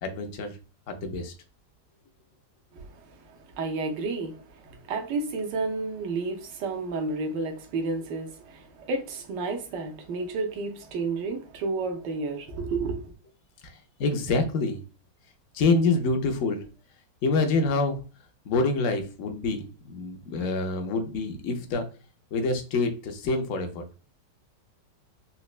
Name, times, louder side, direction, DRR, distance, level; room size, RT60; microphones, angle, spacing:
voice 1, 0.0-0.6 0.9-1.3 13.6-14.8 15.5-16.6 17.2-18.0 18.4-21.9 22.3-23.9, left 3 dB, 65° left, 0.8 m, -26 dB
voice 2, 2.7-13.1, right 3 dB, 85° right, 1.3 m, -31 dB
4.1 x 2.1 x 2.4 m
omnidirectional pair, 1.9 m